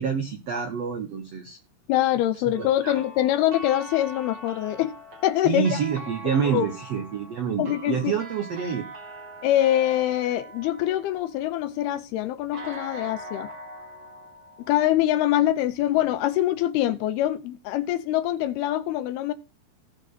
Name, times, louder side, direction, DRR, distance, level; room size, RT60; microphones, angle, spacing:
voice 1, 0.0-1.6 2.6-3.0 5.4-8.9, right 7 dB, 75° right, 1.5 m, -27 dB
voice 2, 1.9-5.0 5.2-5.8 6.5-6.7 7.6-8.1 9.4-13.5 14.7-19.3, left 13 dB, 80° left, 2.5 m, -24 dB
sound 1, 2.5-11.7 12.5-15.4, right 1 dB, 40° right, 1.5 m, -42 dB
17.0 x 5.8 x 3.9 m
omnidirectional pair, 4.8 m